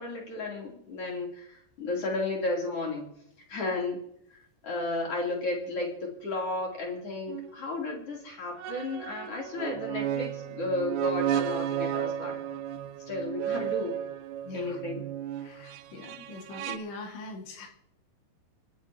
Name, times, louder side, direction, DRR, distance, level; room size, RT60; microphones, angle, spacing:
voice 1, 0.0-3.1 3.5-4.0 4.3-4.4 4.6-12.4 13.1-14.0 14.5-15.0, left 2 dB, 35° left, -2 dB, 3.8 m, -33 dB
sound 1, 7.3-7.5 8.6-16.8, right 10 dB, 80° right, 2.6 m, -33 dB
voice 2, 14.4-14.8 15.4-17.7, left 2 dB, 85° left, 1 dB, 4.3 m, -42 dB
25.0 x 10.0 x 2.9 m, 0.74 s
omnidirectional pair, 5.0 m